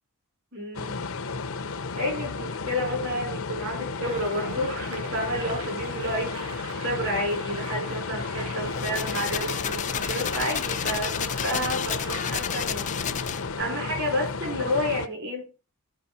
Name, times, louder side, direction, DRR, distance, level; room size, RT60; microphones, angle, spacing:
voice 1, 0.5-1.0 1.9-15.5, equal, 60° right, 1 dB, 4.6 m, -30 dB
sound 1, 0.7-15.1, left 4 dB, 70° left, 0.8 m, -33 dB
sound 2, 4.0-12.4, right 2 dB, 85° right, 3.0 m, -42 dB
sound 3, 8.6-13.6, left 9 dB, 35° left, 0.4 m, -32 dB
14.0 x 5.1 x 4.2 m, 0.33 s
head